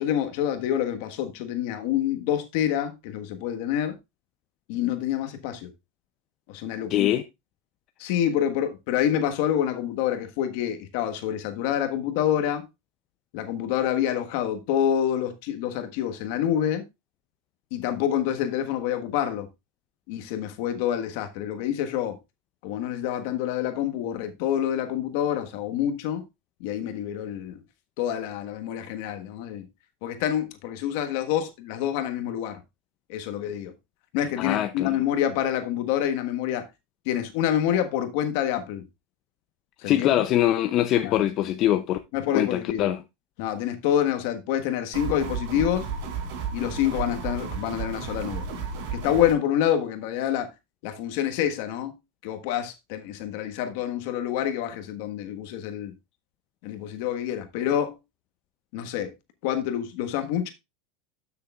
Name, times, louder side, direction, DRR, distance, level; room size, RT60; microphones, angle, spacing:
voice 1, 0.0-4.0 4.7-5.7 6.5-7.1 8.0-12.6 13.3-16.8 17.7-19.5 20.1-22.2 22.6-26.2 26.6-27.6 28.0-29.7 30.0-32.6 33.1-33.7 34.1-36.7 37.0-38.8 39.8-40.1 41.0-41.1 42.1-42.9 43.4-45.9 46.5-48.4 48.9-50.5 50.8-51.9 52.2-55.9 56.6-58.0 58.7-59.1 59.4-60.5, left 10 dB, 65° left, 1.4 m, -27 dB
voice 2, 6.9-7.2 34.4-35.0 39.8-42.0 42.3-43.0, left 12 dB, 40° left, 0.5 m, -23 dB
sound 1, 44.9-49.3, right 5 dB, 65° right, 4.1 m, -33 dB
12.5 x 6.7 x 2.4 m
supercardioid pair, 140°, 0 cm